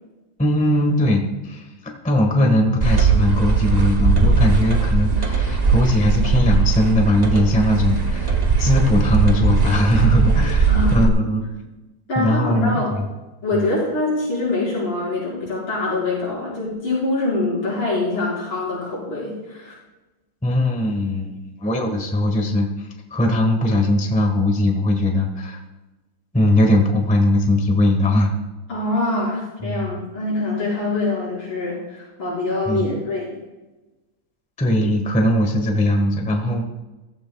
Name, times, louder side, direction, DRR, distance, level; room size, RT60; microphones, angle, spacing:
voice 1, 0.4-11.4 12.2-13.0 13.5-13.6 20.4-21.3 21.6-25.6 26.3-28.3 29.6-29.9 32.7-32.9 34.6-36.6, left 1 dB, 5° left, 3 dB, 1.0 m, -20 dB
sound 1, 2.8-11.1, right 4 dB, 90° right, 0.3 m, -19 dB
voice 2, 10.7-11.1 12.1-12.9 13.4-19.7 28.7-33.3, left 2 dB, 90° left, -8 dB, 5.9 m, -24 dB
15.0 x 14.5 x 2.3 m, 1.1 s
omnidirectional pair, 2.3 m